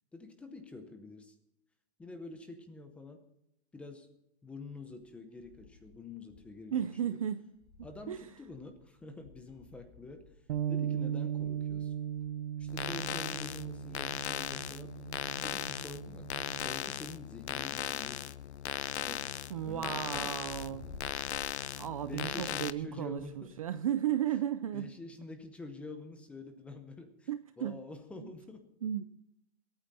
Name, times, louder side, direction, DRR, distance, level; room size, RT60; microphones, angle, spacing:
voice 1, 0.1-1.3 2.0-3.2 3.7-4.1 4.4-6.7 7.0-7.2 7.8-10.3 10.7-12.0 12.6-14.9 15.4-16.3 16.6-18.4 18.7-19.3 19.6-20.4 22.0-23.6 24.7-27.3 27.6-28.7, left 3 dB, 5° left, 7 dB, 0.7 m, -47 dB
sound 1, 4.7-6.7 7.0-7.1 7.4-23.7, left 4 dB, 35° left, 4.7 m, -57 dB
voice 2, 6.7-7.5 7.8-8.3 19.5-20.9 21.8-24.9 27.3-27.8 28.2-28.3 28.8-29.0, right 10 dB, 30° right, 12 dB, 0.4 m, -34 dB
Bass guitar, 10.5-16.7, right 10 dB, 55° right, 0.9 m, -38 dB
sound 2, 12.7-22.7, left 11 dB, 75° left, 0.7 m, -38 dB
21.5 x 9.0 x 4.1 m, 0.82 s
hypercardioid pair, 165°, 34 cm